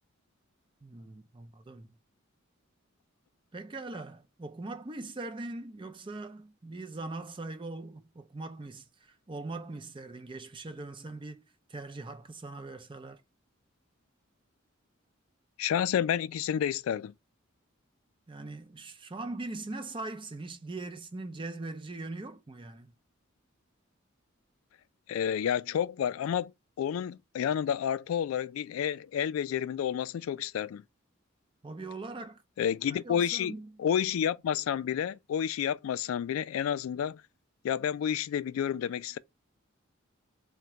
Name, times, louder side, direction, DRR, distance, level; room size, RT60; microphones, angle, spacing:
voice 1, 0.8-1.9 3.5-11.4 11.7-13.2 18.3-22.9 31.6-32.4 32.8-33.8, right 2 dB, 25° right, 0.5 m, -41 dB
voice 2, 15.6-17.1 25.1-26.5 26.8-30.8 32.6-37.2 37.6-39.2, left 9 dB, 80° left, 0.3 m, -30 dB
3.8 x 2.2 x 4.3 m
head